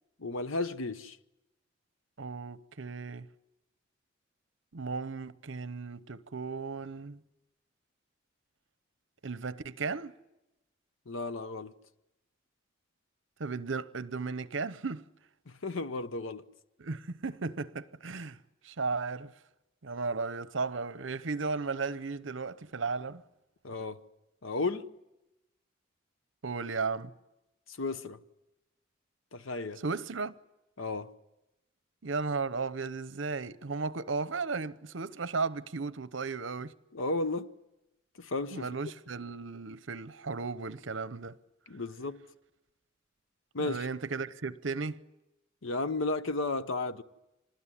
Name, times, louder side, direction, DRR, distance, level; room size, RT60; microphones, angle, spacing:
voice 1, 0.2-1.2 11.1-11.7 15.5-16.4 23.6-24.0 24.4-24.9 27.7-28.2 29.3-29.8 30.8-31.1 36.9-37.5 38.2-38.7 41.7-42.2 43.5-43.9 45.6-47.0, left 3 dB, 80° left, 0.9 m, -33 dB
voice 2, 2.2-3.3 4.7-7.2 9.2-10.1 13.4-15.1 16.8-18.4 18.6-19.3 19.8-23.2 26.4-27.1 29.8-30.3 32.0-36.7 38.5-41.4 43.6-45.0, right 4 dB, 70° right, 0.8 m, -35 dB
25.5 x 20.0 x 9.9 m
head